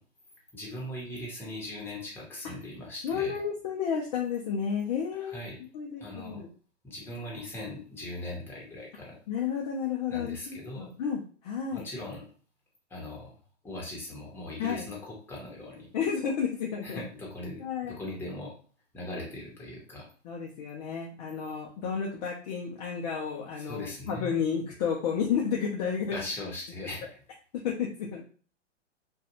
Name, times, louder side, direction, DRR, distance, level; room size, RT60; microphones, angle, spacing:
voice 1, 0.5-3.4 5.2-5.6 6.0-6.4 6.8-9.2 10.1-10.9 11.7-12.3 12.9-13.3 13.6-15.9 16.8-18.5 18.9-20.1 23.6-24.3 26.1-27.0, left 1 dB, 5° left, -4 dB, 0.9 m, -39 dB
voice 2, 3.0-5.4 5.7-6.5 9.3-11.8 14.6-14.9 15.9-17.0 17.6-18.0 20.2-26.2 27.5-28.2, left 7 dB, 35° left, -1 dB, 0.4 m, -31 dB
2.5 x 2.2 x 2.8 m, 0.41 s
hypercardioid pair, 125°, 37 cm